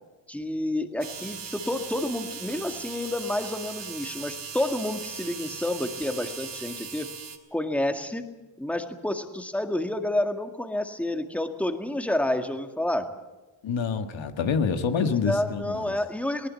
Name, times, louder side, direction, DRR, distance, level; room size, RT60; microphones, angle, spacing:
voice 1, 0.3-7.1 7.5-8.3 8.6-13.1 15.0-16.5, left 1 dB, 5° left, 6 dB, 1.8 m, -29 dB
sound 1, 1.0-7.4, right 7 dB, 65° right, 2.5 m, -39 dB
voice 2, 13.6-16.0, left 5 dB, 75° left, 7 dB, 1.7 m, -27 dB
19.5 x 18.5 x 8.4 m, 1.1 s
cardioid pair, 100°, 46 cm